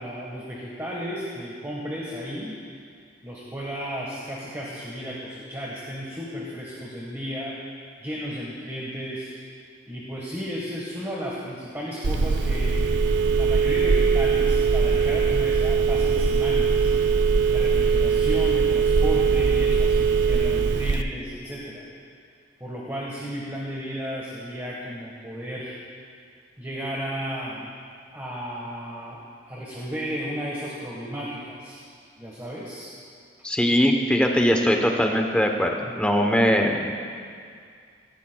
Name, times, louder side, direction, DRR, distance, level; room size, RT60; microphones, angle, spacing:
voice 1, 0.0-2.6 3.2-7.7 8.0-12.8 13.3-16.9 17.5-21.8 22.6-25.8 26.6-27.7 28.1-29.2 29.5-31.8 32.2-32.9, equal, 15° right, -5 dB, 1.3 m, -34 dB
Telephone, 12.0-21.0, right 5 dB, 70° right, 0.5 m, -21 dB
voice 2, 33.4-36.9, equal, 5° left, 2 dB, 0.8 m, -21 dB
18.0 x 15.0 x 2.3 m, 2.2 s
head